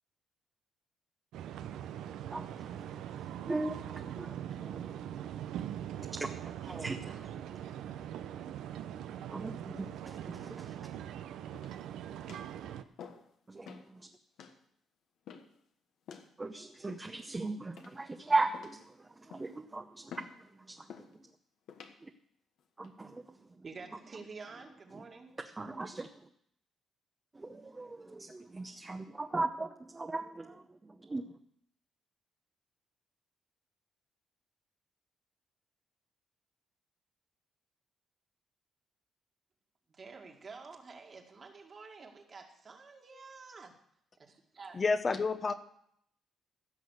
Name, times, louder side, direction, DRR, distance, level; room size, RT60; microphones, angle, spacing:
sound 1, 1.3-12.8, right 10 dB, 85° right, 0.7 m, -42 dB
voice 1, 2.3-5.0 6.1-6.3 6.6-7.3 9.3-10.8 13.5-14.1 16.4-21.1 22.0-22.1 22.8-23.5 24.9-25.0 25.6-26.3 27.3-31.3, right 3 dB, 20° right, 5 dB, 0.8 m, -38 dB
sound 2, 11.5-11.9 12.3-12.5 13.0-13.3 13.6-13.9 14.4-14.6 15.3-15.6 16.1-16.3 16.9-17.3 17.8-18.1 18.5-18.9 19.3-19.6 20.1-20.4 20.9-21.1 21.7-22.0 22.6-22.9, left 7 dB, 75° left, 1.3 m, -50 dB
voice 2, 23.6-25.4 39.9-43.7 44.2-44.8, right 4 dB, 40° right, 3 dB, 2.1 m, -49 dB
voice 3, 44.7-45.5, left 4 dB, 35° left, 9 dB, 0.9 m, -29 dB
16.0 x 6.2 x 6.6 m, 0.70 s
cardioid pair, 90°, 0 cm